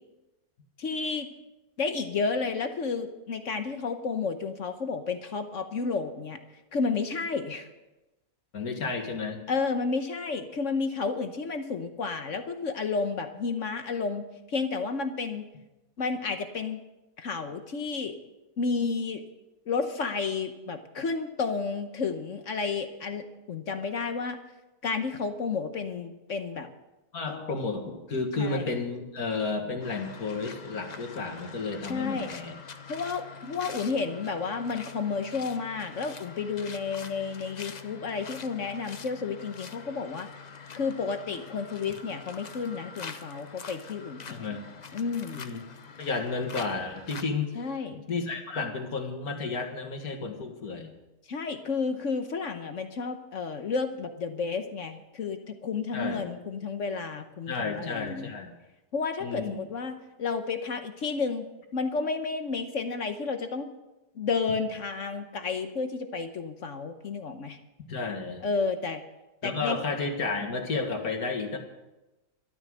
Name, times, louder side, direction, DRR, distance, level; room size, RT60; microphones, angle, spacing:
voice 1, 0.8-1.3 1.8-6.4 6.7-7.7 9.5-15.5 16.0-16.8 17.2-18.2 18.6-19.2 19.7-24.4 24.8-26.7 27.3-27.6 28.4-28.7 31.9-32.3 32.9-40.3 40.7-44.4 44.9-45.4 47.5-48.0 51.3-58.3 58.9-61.5 61.7-63.7 64.1-67.6 68.4-69.0 69.4-69.8, left 4 dB, 60° left, 7 dB, 1.2 m, -31 dB
voice 2, 8.5-9.4 27.1-32.5 44.3-44.6 45.4-45.6 46.0-47.6 47.9-50.9 55.9-56.2 57.5-58.5 59.2-59.6 67.9-68.5 69.4-71.6, left 4 dB, 75° left, 4 dB, 2.2 m, -32 dB
sound 1, 29.8-47.2, left 5 dB, 40° left, 0.6 m, -45 dB
13.0 x 12.0 x 6.3 m, 1.0 s
omnidirectional pair, 1.6 m